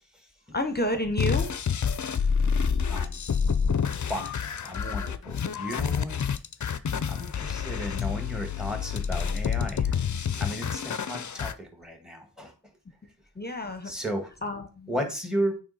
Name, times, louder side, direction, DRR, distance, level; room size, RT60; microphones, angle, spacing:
voice 1, 0.5-1.5 13.4-13.9 14.4-14.9, left 1 dB, 25° left, 7 dB, 0.9 m, -29 dB
sound 1, 1.2-11.5, left 6 dB, 50° left, 0.5 m, -28 dB
voice 2, 2.5-3.2 4.1-4.3 4.6-6.3 6.7-10.0 10.4-12.5 13.8-14.3 14.9-15.6, equal, ahead, 4 dB, 1.6 m, -34 dB
8.7 x 3.1 x 4.1 m, 0.35 s
wide cardioid pair, 45°, 39 cm